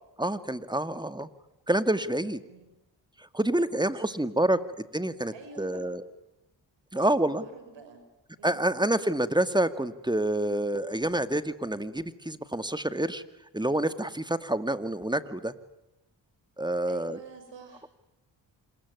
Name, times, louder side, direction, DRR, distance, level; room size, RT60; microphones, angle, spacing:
voice 1, 0.2-1.3 1.7-2.4 3.3-4.6 4.9-6.0 6.9-7.4 8.4-13.2 13.5-15.5 16.6-17.2, right 1 dB, 10° right, 11 dB, 2.1 m, -27 dB
voice 2, 3.4-4.6 5.3-6.0 6.9-8.0 8.4-8.7 16.9-17.9, right 5 dB, 75° right, 8 dB, 6.1 m, -49 dB
26.5 x 21.5 x 9.7 m, 0.93 s
supercardioid pair, 45°, 45 cm